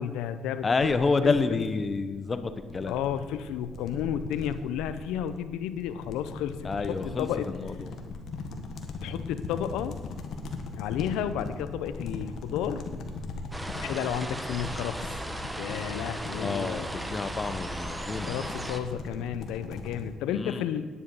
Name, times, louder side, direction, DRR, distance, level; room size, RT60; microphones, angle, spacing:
voice 1, 0.0-0.7 1.2-1.7 2.9-7.5 9.0-10.0 10.7-12.8 13.8-15.1 15.6-16.9 18.3-20.8, left 9 dB, 90° left, 12 dB, 0.6 m, -32 dB
voice 2, 0.6-3.0 6.6-7.9 16.4-18.4 20.3-20.6, left 4 dB, 35° left, 11 dB, 0.9 m, -29 dB
sound 1, 0.8-20.1, left 3 dB, 70° left, 1.4 m, -40 dB
sound 2, 13.5-18.8, right 1 dB, 10° right, 1.1 m, -36 dB
10.0 x 9.8 x 5.5 m, 1.5 s
cardioid pair, 80°, 0 cm